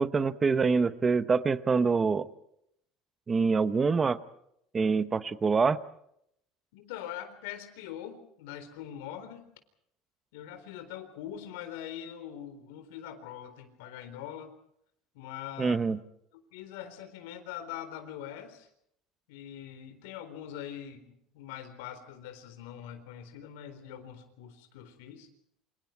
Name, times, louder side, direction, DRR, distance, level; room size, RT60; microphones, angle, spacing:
voice 1, 0.0-2.3 3.3-4.2 4.7-5.8 15.6-16.0, right 4 dB, 15° right, 13 dB, 0.8 m, -25 dB
voice 2, 6.7-9.5 10.3-14.5 15.1-15.8 16.3-18.7 19.3-25.3, left 10 dB, 85° left, 8 dB, 4.1 m, -43 dB
29.0 x 26.5 x 4.6 m, 0.73 s
cardioid pair, 175°, 0 cm